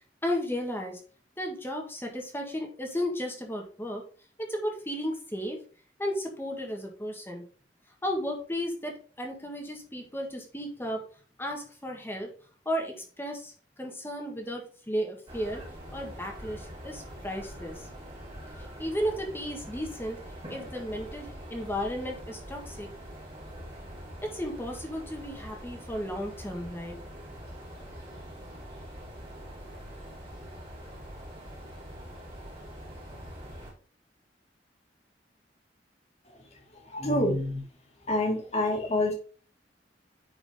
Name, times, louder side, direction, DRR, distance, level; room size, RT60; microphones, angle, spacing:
voice 1, 0.2-1.0 1.4-4.0 4.4-5.6 6.0-7.4 8.0-11.0 11.4-12.3 12.7-15.6 15.9-17.9 18.6-20.2 20.5-22.9 24.2-27.0, equal, 15° left, 2 dB, 1.6 m, -34 dB
sound 1, 15.3-33.7, equal, 30° right, 3.5 m, -44 dB
voice 2, 36.3-37.7 38.1-39.1, left 1 dB, 40° left, 1 dB, 2.2 m, -28 dB
9.8 x 4.8 x 3.7 m, 0.41 s
head